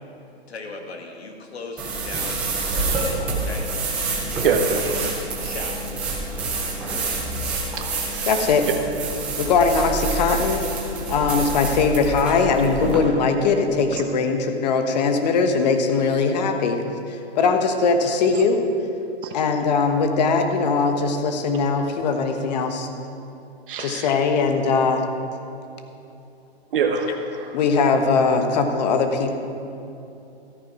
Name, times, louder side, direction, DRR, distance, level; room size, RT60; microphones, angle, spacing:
voice 1, 0.5-3.7 5.4-5.8, left 3 dB, 75° left, 2 dB, 2.1 m, -38 dB
sound 1, 1.8-13.0, right 3 dB, 5° right, 0.4 m, -27 dB
voice 2, 4.4-5.1 7.8-8.3 19.2-19.3 23.7-24.1 26.7-27.5, right 5 dB, 55° right, 4 dB, 1.1 m, -25 dB
voice 3, 8.2-8.7 9.4-10.6 11.1-18.6 19.3-22.9 23.8-25.0 27.5-29.3, left 4 dB, 40° left, 6 dB, 1.2 m, -20 dB
14.0 x 9.1 x 4.8 m, 2.8 s
hypercardioid pair, 155°, 32 cm